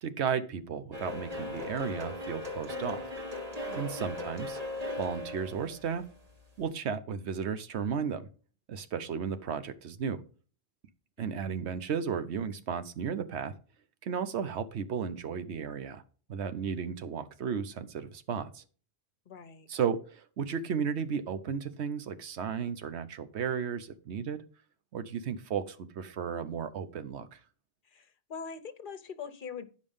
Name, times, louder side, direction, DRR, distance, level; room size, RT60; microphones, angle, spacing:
voice 1, 0.0-3.1 3.8-4.6 5.0-6.1 6.6-8.3 8.7-10.2 11.2-13.5 14.0-16.0 16.3-18.6 19.7-24.4 24.9-27.4, right 7 dB, 90° right, 11 dB, 1.1 m, -34 dB
sound 1, 0.9-6.7, left 1 dB, 35° right, 1.5 m, -38 dB
voice 2, 3.7-4.1 11.2-11.7 19.3-19.7 27.8-29.7, left 6 dB, 55° left, 11 dB, 1.0 m, -44 dB
10.0 x 5.3 x 5.4 m, 0.39 s
omnidirectional pair, 1.1 m